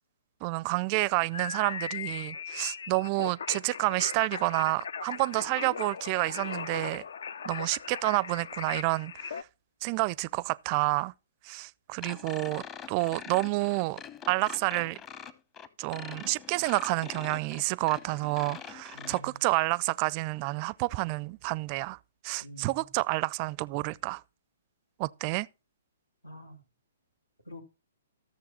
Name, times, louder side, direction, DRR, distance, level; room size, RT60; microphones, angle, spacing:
voice 1, 0.4-7.0 7.5-9.4 9.8-11.1 11.4-14.0 14.3-15.0 15.8-22.0 22.2-24.2 25.0-25.5, right 23 dB, 35° right, 0.4 m, -29 dB
sound 1, 1.3-9.4, left 6 dB, 65° left, 0.5 m, -38 dB
sound 2, 12.0-19.2, left 7 dB, 20° left, 0.9 m, -44 dB
voice 2, 18.9-19.4 22.4-23.0 26.2-26.6 27.4-27.6, equal, 90° left, 2.5 m, -47 dB
14.5 x 7.0 x 4.3 m
figure-of-eight pair, 120°, 0 cm